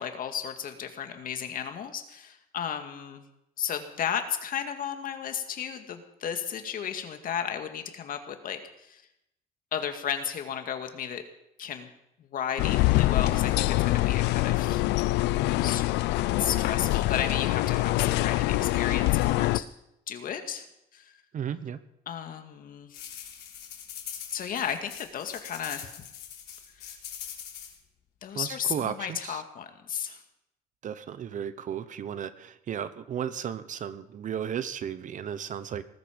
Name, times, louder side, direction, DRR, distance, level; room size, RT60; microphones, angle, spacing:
voice 1, 0.0-3.3 3.6-9.0 9.7-11.2 11.6-11.9 12.3-14.9 15.6-15.8 16.1-19.7 20.1-20.7 20.9-21.2 22.1-23.0 24.3-25.9 28.2-30.2, left 8 dB, 55° left, 6 dB, 2.1 m, -34 dB
sound 1, 12.6-19.6, left 18 dB, 85° left, 0.5 m, -25 dB
voice 2, 21.3-21.8 28.3-29.4 30.8-35.8, right 8 dB, 50° right, 14 dB, 1.0 m, -34 dB
sound 2, 22.9-27.7, left 9 dB, 70° left, 3.8 m, -42 dB
19.5 x 13.0 x 5.3 m, 0.84 s
cardioid pair, 110°, 17 cm